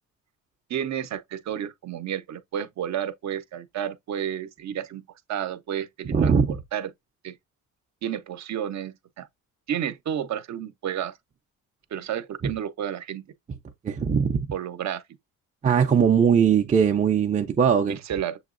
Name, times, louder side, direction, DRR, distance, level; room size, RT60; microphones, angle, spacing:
voice 1, 0.7-5.0 5.3-6.9 7.2-7.4 8.0-9.3 9.7-11.2 11.9-13.3 14.5-15.0 17.9-18.4, right 9 dB, 55° right, 0.7 m, -31 dB
voice 2, 6.1-6.6 12.4-12.5 13.8-14.5 15.6-18.0, right 7 dB, 20° right, 0.5 m, -20 dB
7.1 x 2.9 x 2.5 m
cardioid pair, 130°, 33 cm